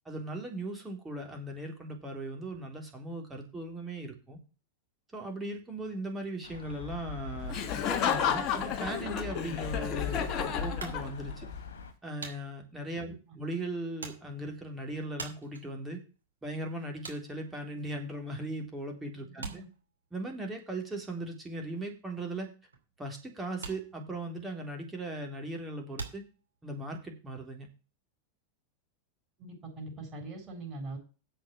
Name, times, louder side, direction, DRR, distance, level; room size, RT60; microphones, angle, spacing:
voice 1, 0.1-4.4 5.1-7.6 8.1-11.5 12.0-16.0 16.4-19.5 20.1-22.5 23.0-26.2 26.6-27.7, right 1 dB, 10° right, 1 dB, 3.7 m, -38 dB
sound 1, 6.4-11.9, left 6 dB, 65° left, 1.9 m, -40 dB
Laughter, 7.5-11.4, left 8 dB, 35° left, 1.5 m, -32 dB
sound 2, 10.8-18.6 18.9-27.0, right 4 dB, 75° right, 2.5 m, -47 dB
voice 2, 19.2-19.7 29.4-31.0, right 2 dB, 25° right, 1 dB, 7.5 m, -42 dB
8.1 x 6.3 x 8.2 m, 0.33 s
figure-of-eight pair, 90°, 0 cm